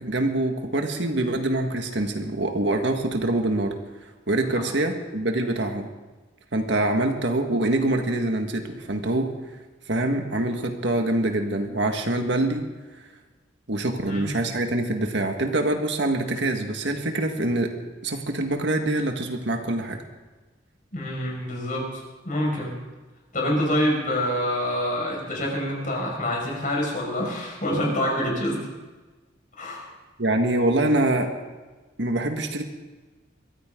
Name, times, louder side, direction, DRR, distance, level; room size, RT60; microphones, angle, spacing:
voice 1, 0.0-3.7 4.3-5.9 6.5-9.3 9.9-12.6 13.7-17.7 18.0-20.0 30.2-31.3 32.0-32.6, right 1 dB, 70° right, 4 dB, 1.7 m, -25 dB
voice 2, 20.9-22.0 22.2-22.7 23.3-28.7 29.6-29.9, equal, 45° left, -1 dB, 5.5 m, -26 dB
22.5 x 15.0 x 3.8 m, 1.3 s
head